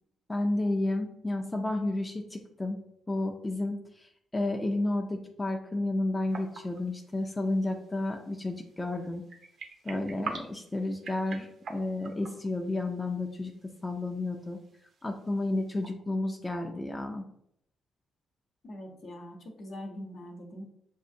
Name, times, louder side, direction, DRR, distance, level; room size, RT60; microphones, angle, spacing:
voice 1, 0.3-2.8 3.1-9.2 9.8-14.6 15.0-17.2, left 2 dB, 20° left, 2 dB, 0.5 m, -31 dB
sound 1, 6.3-15.9, right 4 dB, 60° right, 0.6 m, -47 dB
voice 2, 18.6-20.6, left 1 dB, 60° left, 1 dB, 0.9 m, -42 dB
6.3 x 2.4 x 2.7 m, 0.74 s
hypercardioid pair, 45°, 0 cm